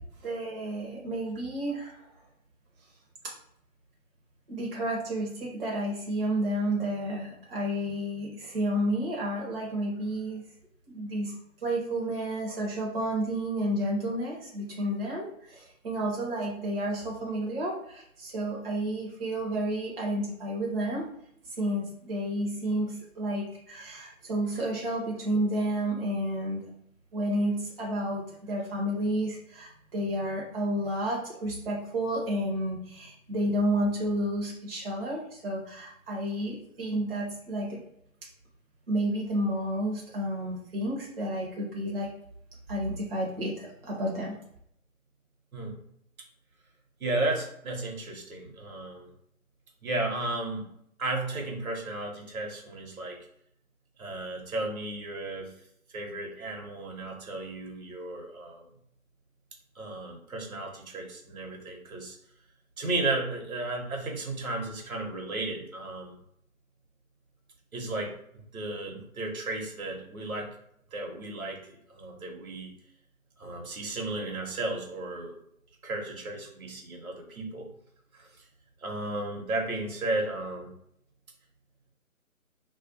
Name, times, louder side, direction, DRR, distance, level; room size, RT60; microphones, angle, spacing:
voice 1, 0.2-2.1 4.5-10.4 10.9-21.1 21.5-26.7 27.1-37.8 38.9-42.1 42.7-44.4, right 1 dB, 40° right, -3 dB, 0.7 m, -31 dB
voice 2, 47.0-49.1 49.8-50.7 51.0-53.2 54.0-55.5 55.9-58.6 59.7-62.2 62.8-66.2 67.7-68.1 68.5-70.5 70.9-72.7 73.4-75.3 75.8-77.7 78.1-78.3 78.8-80.7, right 2 dB, 75° right, 1 dB, 0.9 m, -34 dB
2.3 x 2.2 x 2.6 m, 0.71 s
figure-of-eight pair, 155°, 43 cm